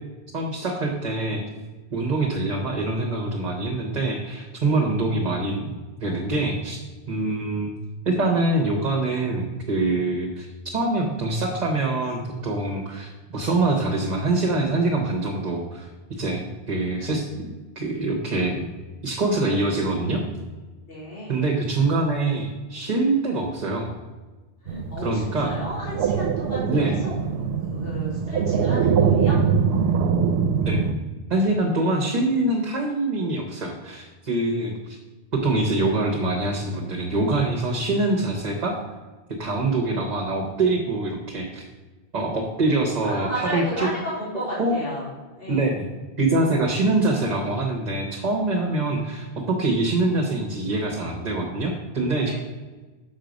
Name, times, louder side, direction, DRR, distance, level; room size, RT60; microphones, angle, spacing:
voice 1, 0.3-1.4 1.9-6.8 7.1-7.7 8.0-17.5 17.8-18.7 19.0-20.2 21.3-23.9 25.0-25.6 26.7-27.0 30.6-30.8 31.3-35.0 35.3-38.8 39.3-41.6 42.1-43.9 44.6-44.7 45.5-45.9 46.2-52.3, right 2 dB, 45° right, 0 dB, 1.0 m, -24 dB
voice 2, 20.8-21.4 24.6-29.4 31.4-31.6 43.0-45.8 52.2-52.3, equal, 65° left, -8 dB, 3.0 m, -34 dB
sound 1, 24.7-30.9, right 6 dB, 85° right, 0.8 m, -23 dB
6.5 x 5.9 x 5.1 m, 1.3 s
omnidirectional pair, 1.0 m